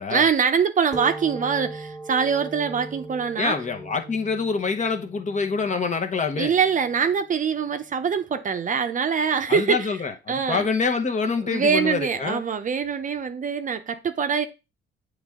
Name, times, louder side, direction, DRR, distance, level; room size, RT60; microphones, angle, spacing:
voice 1, 0.1-3.6 6.4-9.9 10.3-10.6 11.5-14.5, right 6 dB, 40° right, 0.6 m, -23 dB
sound 1, 0.9-8.2, right 2 dB, 15° left, 1.4 m, -40 dB
voice 2, 3.4-6.5 9.5-12.4, left 4 dB, 40° left, 1.0 m, -26 dB
8.0 x 3.3 x 3.6 m
cardioid pair, 90°, 20 cm